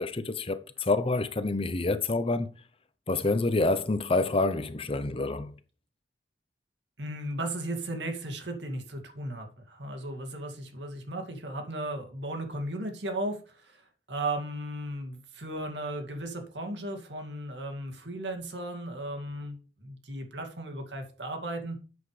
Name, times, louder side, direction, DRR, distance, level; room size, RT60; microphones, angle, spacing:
voice 1, 0.0-2.5 3.1-5.5, left 2 dB, 30° left, 0.7 m, -27 dB
voice 2, 7.0-21.8, right 1 dB, 80° right, 2.3 m, -36 dB
11.5 x 8.1 x 3.3 m
head